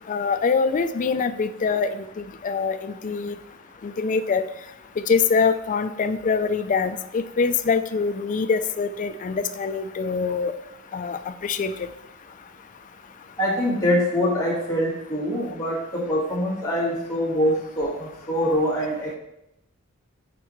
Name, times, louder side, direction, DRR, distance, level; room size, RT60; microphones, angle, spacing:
voice 1, 0.1-3.4 3.8-4.5 5.1-10.5 10.9-11.9, left 5 dB, 40° left, 11 dB, 0.3 m, -24 dB
voice 2, 13.4-19.2, equal, 15° left, -6 dB, 1.5 m, -24 dB
9.4 x 4.3 x 3.0 m, 0.85 s
head